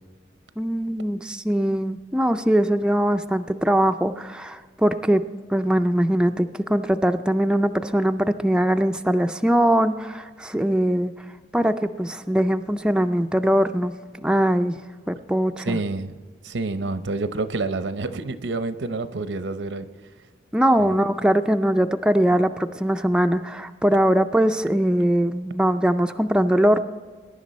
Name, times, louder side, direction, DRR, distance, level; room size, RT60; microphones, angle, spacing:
voice 1, 0.6-5.2 5.5-11.1 11.5-13.9 14.2-14.8 15.1-15.8 20.5-26.8, right 1 dB, 5° right, 6 dB, 0.4 m, -21 dB
voice 2, 15.6-16.2 16.4-19.9 20.8-20.9, right 3 dB, 80° right, 11 dB, 0.7 m, -28 dB
21.0 x 10.5 x 4.2 m, 1.5 s
head